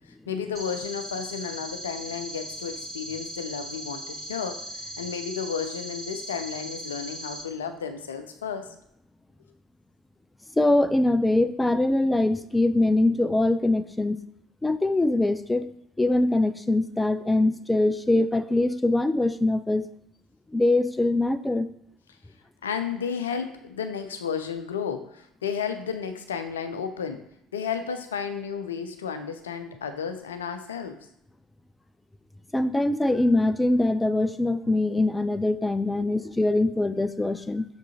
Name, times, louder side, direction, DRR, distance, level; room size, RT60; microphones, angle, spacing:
voice 1, 0.1-8.7 22.6-27.2 27.5-31.0 35.9-36.1, left 7 dB, 75° left, 8 dB, 0.5 m, -33 dB
sound 1, 0.6-7.4, equal, 45° right, 2.4 m, -38 dB
voice 2, 10.6-14.2 14.6-15.7 16.0-19.9 20.5-21.7 32.5-37.7, left 2 dB, 10° left, 12 dB, 0.4 m, -23 dB
6.1 x 5.9 x 2.8 m, 0.76 s
figure-of-eight pair, 55°, 0 cm